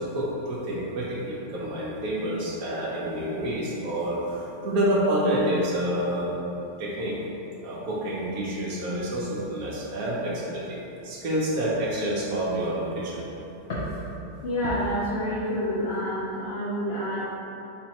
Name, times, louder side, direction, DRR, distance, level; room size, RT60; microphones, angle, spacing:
voice 1, 0.0-6.3 6.8-7.2 7.6-10.8 11.0-13.2, right 1 dB, 70° right, -5 dB, 1.2 m, -28 dB
voice 2, 14.4-17.3, equal, 55° left, -8 dB, 0.7 m, -28 dB
4.3 x 3.9 x 2.9 m, 3.0 s
omnidirectional pair, 1.7 m